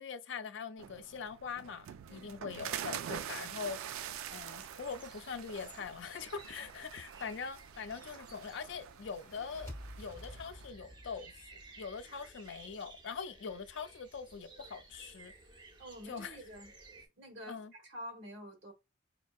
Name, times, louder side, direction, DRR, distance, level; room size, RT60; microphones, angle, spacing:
voice 1, 0.0-3.8 4.3-9.7 10.0-15.3 16.0-16.4 17.5-17.7, left 5 dB, 60° left, 0.4 m, -43 dB
sound 1, 0.8-10.7, right 9 dB, 80° right, 0.3 m, -45 dB
sound 2, 3.9-17.1, right 3 dB, 20° right, 0.5 m, -57 dB
sound 3, 9.1-12.4, equal, 15° left, 0.6 m, -50 dB
voice 2, 15.8-16.7 17.2-18.7, equal, 60° right, 0.8 m, -48 dB
4.2 x 2.6 x 2.3 m
head